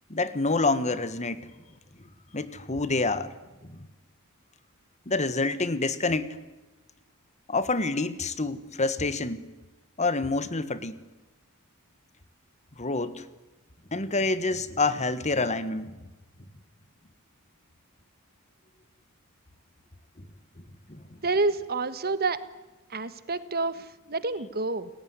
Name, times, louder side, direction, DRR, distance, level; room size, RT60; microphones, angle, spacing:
voice 1, 0.1-1.5 2.3-3.3 3.6-3.9 5.1-6.3 7.5-9.4 10.0-11.0 12.8-13.2 13.9-15.9 20.9-21.0, left 3 dB, 30° left, 13 dB, 1.6 m, -27 dB
voice 2, 21.2-22.4 22.9-24.9, right 3 dB, 45° right, 13 dB, 1.5 m, -28 dB
30.0 x 20.0 x 9.7 m, 1.1 s
head